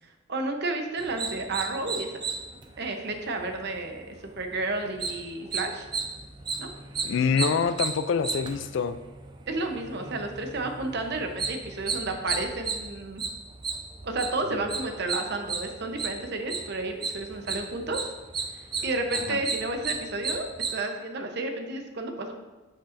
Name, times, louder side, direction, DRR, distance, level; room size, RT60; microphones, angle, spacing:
voice 1, 0.0-2.1 2.8-5.9 6.6-6.7 9.5-13.2 14.0-18.0 18.8-22.3, right 2 dB, 55° right, 5 dB, 0.8 m, -31 dB
sound 1, 1.0-20.8, right 4 dB, 20° right, 0.4 m, -34 dB
voice 2, 7.0-9.0 14.5-14.8 19.3-19.4, left 6 dB, 60° left, 12 dB, 0.3 m, -26 dB
9.9 x 5.5 x 2.6 m, 1.2 s
head